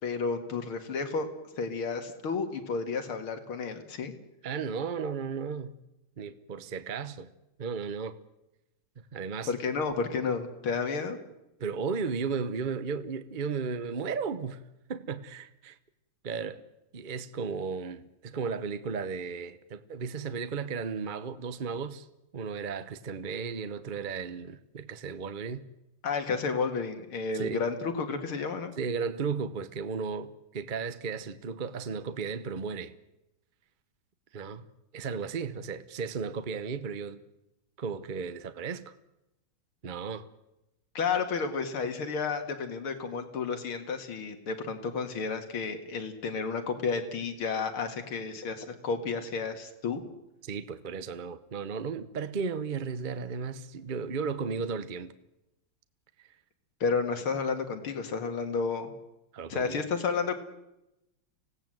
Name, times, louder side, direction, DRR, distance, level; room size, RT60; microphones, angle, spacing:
voice 1, 0.0-1.3 1.5-4.1 9.5-11.2 26.0-28.7 40.9-50.0 56.8-58.9 59.5-60.4, left 5 dB, 85° left, 2.8 m, -31 dB
voice 2, 4.4-5.8 6.2-7.3 7.6-8.2 9.1-9.5 11.6-14.6 14.9-15.8 16.2-16.6 16.9-22.1 22.3-25.6 27.3-27.6 28.8-32.9 34.3-34.7 34.9-37.2 37.8-38.9 39.8-40.3 50.4-55.1 59.3-59.9, right 5 dB, 45° right, 0.6 m, -35 dB
25.5 x 17.5 x 7.8 m
omnidirectional pair, 2.3 m